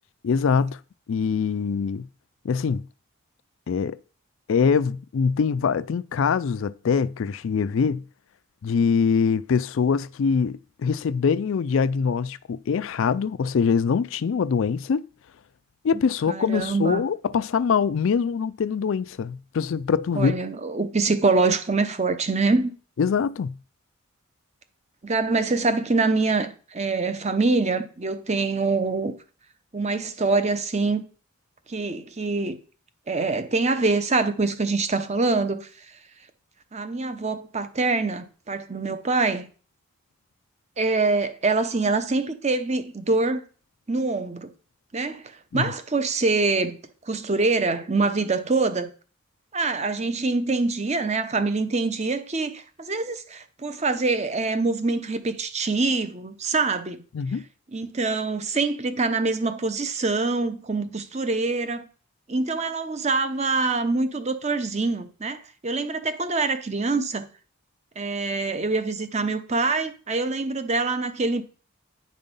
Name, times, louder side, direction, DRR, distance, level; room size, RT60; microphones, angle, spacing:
voice 1, 0.2-0.8 1.1-2.1 2.4-2.9 3.7-4.0 4.5-8.0 8.6-15.0 15.8-20.3 23.0-23.6 45.5-45.7 57.1-57.5, left 6 dB, 65° left, 0.4 m, -23 dB
voice 2, 16.3-17.0 20.2-22.7 25.0-29.1 29.7-31.0 31.7-32.6 33.1-35.7 36.7-39.5 40.8-43.4 43.9-44.5 44.9-45.2 45.5-46.8 47.0-48.9 49.5-57.0 57.7-61.9 62.3-67.3 68.0-71.4, right 3 dB, 30° right, 0.8 m, -25 dB
9.7 x 5.4 x 5.3 m
head